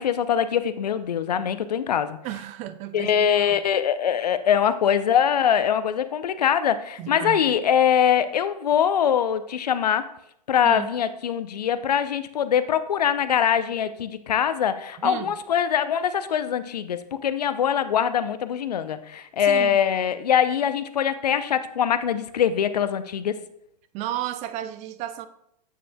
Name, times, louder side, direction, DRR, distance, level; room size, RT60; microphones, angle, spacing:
voice 1, 0.0-2.2 2.9-10.1 10.5-23.4, left 8 dB, 75° left, 12 dB, 0.6 m, -23 dB
voice 2, 2.2-3.6 7.0-7.5 10.6-10.9 15.0-15.4 19.4-19.8 23.9-25.3, right 13 dB, 35° right, 13 dB, 0.5 m, -33 dB
8.2 x 7.4 x 2.3 m, 0.74 s
figure-of-eight pair, 100°, 21 cm